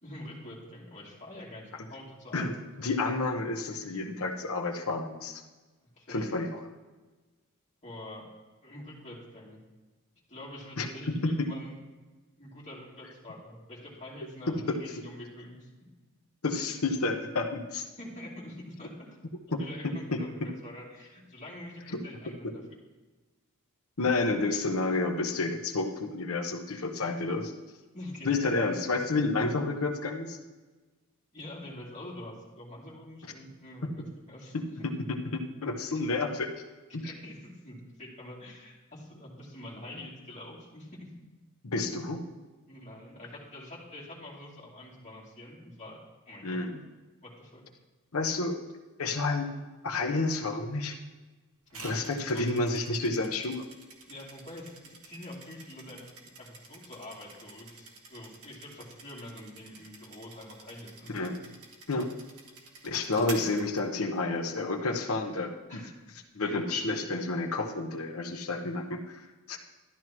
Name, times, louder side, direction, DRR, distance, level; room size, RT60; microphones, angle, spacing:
voice 1, 0.0-2.6 6.0-6.4 7.8-8.3 8.6-9.6 10.3-11.7 12.4-15.7 18.0-19.2 19.5-20.4 20.6-22.6 27.9-28.8 31.3-34.9 35.9-36.0 36.9-41.1 42.7-46.6 47.2-47.6 51.7-51.9 52.3-52.8 54.1-56.1 56.4-61.5 65.7-65.9 66.4-66.6 66.9-67.0, left 1 dB, 35° left, -6 dB, 2.8 m, -46 dB
voice 2, 2.3-5.4 6.1-6.6 10.8-11.5 14.5-14.8 16.4-17.8 19.5-20.5 24.0-27.5 28.2-30.4 33.8-33.9 34.5-36.5 36.9-37.0 41.6-42.2 46.4-46.8 48.1-48.6 49.0-49.5 49.8-51.0 51.8-53.7 61.1-61.4 61.9-62.1 62.8-65.8 66.3-69.6, left 3 dB, 75° left, 4 dB, 1.0 m, -30 dB
sound 1, 51.7-64.4, right 3 dB, 80° right, 1.6 m, -49 dB
13.0 x 11.0 x 3.1 m, 1.2 s
head